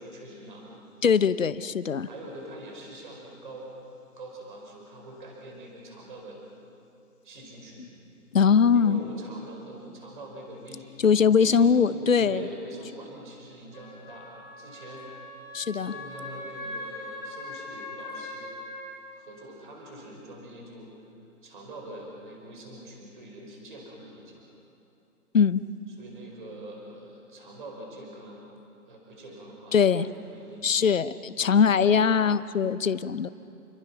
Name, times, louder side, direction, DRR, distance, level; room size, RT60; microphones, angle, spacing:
voice 1, 0.0-0.9 2.0-3.8 4.2-6.4 7.2-7.9 8.7-15.1 15.8-18.5 19.1-20.9 21.4-24.4 26.0-28.4 28.9-30.9 31.4-32.1, right 1 dB, 30° right, 0 dB, 5.1 m, -44 dB
voice 2, 1.0-2.1 8.3-9.0 11.0-12.4 15.5-15.9 25.3-25.6 29.7-30.1 30.6-33.3, left 6 dB, 55° left, 15 dB, 0.9 m, -21 dB
Wind instrument woodwind instrument, 13.7-18.8, left 2 dB, 10° left, 5.1 m, -40 dB
29.0 x 23.0 x 5.9 m, 2.7 s
hypercardioid pair, 175°, 46 cm